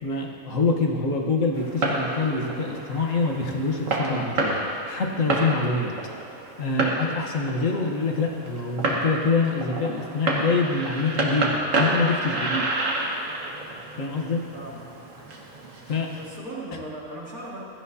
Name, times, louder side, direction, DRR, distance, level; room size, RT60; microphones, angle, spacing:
voice 1, 0.0-4.6 4.9-5.9 6.6-12.7 14.0-14.5 15.9-16.1, left 3 dB, 60° left, 1 dB, 1.5 m, -25 dB
Fireworks, 1.5-16.4, right 2 dB, 60° right, 1.7 m, -29 dB
voice 2, 14.5-15.0 15.8-15.9 16.2-17.6, right 1 dB, 85° right, -5 dB, 2.8 m, -38 dB
16.5 x 13.5 x 2.8 m, 2.4 s
omnidirectional pair, 1.5 m